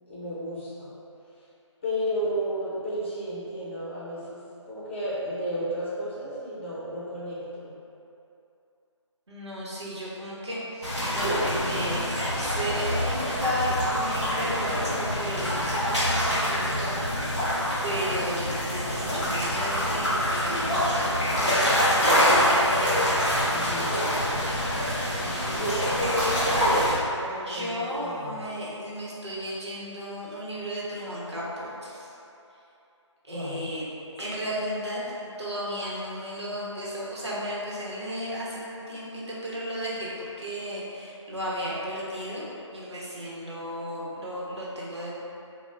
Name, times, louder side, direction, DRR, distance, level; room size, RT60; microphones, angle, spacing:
voice 1, 0.1-0.9 1.8-4.4 4.7-7.7 23.4-23.9 24.5-28.3 33.3-33.6, equal, 25° left, -9 dB, 0.9 m, -32 dB
voice 2, 9.3-17.5 17.8-22.6 27.3-32.1 33.2-33.9 34.2-35.0 35.4-45.1, equal, 60° right, -7 dB, 1.2 m, -34 dB
sound 1, 10.8-26.9, equal, ahead, 0.4 m, -25 dB
4.1 x 2.3 x 3.3 m, 2.8 s
figure-of-eight pair, 155°, 16 cm